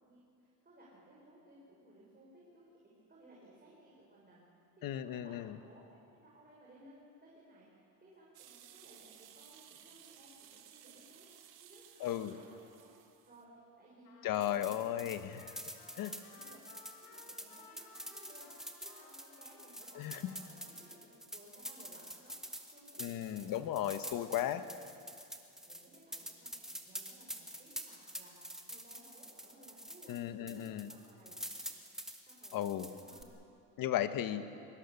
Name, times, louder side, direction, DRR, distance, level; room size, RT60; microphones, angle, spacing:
voice 1, 0.0-2.7 3.1-4.4 4.9-5.3 5.6-5.8 6.2-12.9 13.2-14.3 14.5-15.1 16.3-18.5 18.8-24.1 25.4-31.5 32.3-33.3 34.4-34.6, right 1 dB, 25° right, -5 dB, 6.1 m, -60 dB
voice 2, 4.8-5.6 12.0-12.4 14.2-15.2 15.9-16.1 19.9-20.3 23.0-24.6 30.1-30.9 32.5-32.9 33.8-34.4, left 11 dB, 60° left, 10 dB, 1.4 m, -35 dB
sound 1, 8.3-13.4, right 10 dB, 70° right, 2.2 m, -58 dB
Trumpet, 14.0-21.2, left 4 dB, 80° left, 5.1 m, -60 dB
sound 2, 14.3-30.2 30.5-33.2, equal, ahead, 2.2 m, -47 dB
24.0 x 20.0 x 7.2 m, 2.5 s
cardioid pair, 110°, 39 cm